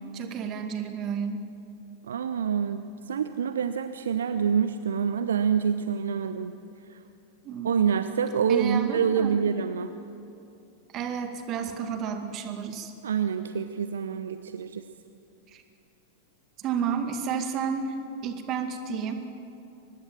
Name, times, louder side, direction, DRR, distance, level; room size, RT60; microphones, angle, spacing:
voice 1, 0.0-1.5 7.4-8.1 8.5-9.4 10.9-12.9 15.5-15.6 16.6-17.9 18.2-19.1, right 6 dB, 35° right, 6 dB, 2.2 m, -31 dB
voice 2, 2.1-6.5 6.9-7.0 7.6-9.9 13.0-14.8, right 7 dB, 65° right, 10 dB, 0.7 m, -26 dB
23.5 x 20.0 x 7.4 m, 2.7 s
figure-of-eight pair, 90°, 0 cm